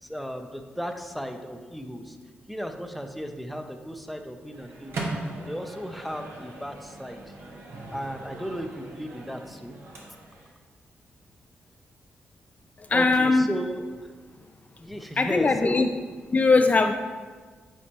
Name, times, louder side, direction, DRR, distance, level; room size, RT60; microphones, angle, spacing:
voice 1, 0.0-2.2 2.5-5.1 5.4-7.3 7.9-9.8 12.9-14.1 14.8-15.8, equal, ahead, 5 dB, 0.6 m, -35 dB
Microwave oven, 4.5-10.5, right 2 dB, 70° right, 1.0 m, -39 dB
voice 2, 12.9-13.5 15.2-15.9 16.3-16.9, left 3 dB, 40° left, 6 dB, 0.3 m, -20 dB
8.3 x 4.3 x 2.9 m, 1.5 s
cardioid pair, 65°, 4 cm